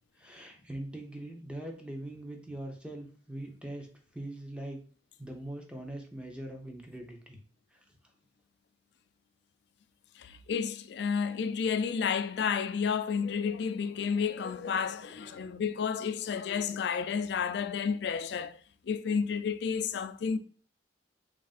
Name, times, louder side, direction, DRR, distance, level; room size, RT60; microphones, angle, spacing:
voice 1, 0.2-3.9 4.1-4.8 5.2-7.4 7.7-7.8, right 1 dB, 5° right, 0.6 m, -42 dB
voice 2, 10.2-18.6 18.8-20.4, left 6 dB, 65° left, 0.3 m, -31 dB
3.5 x 2.5 x 4.0 m
head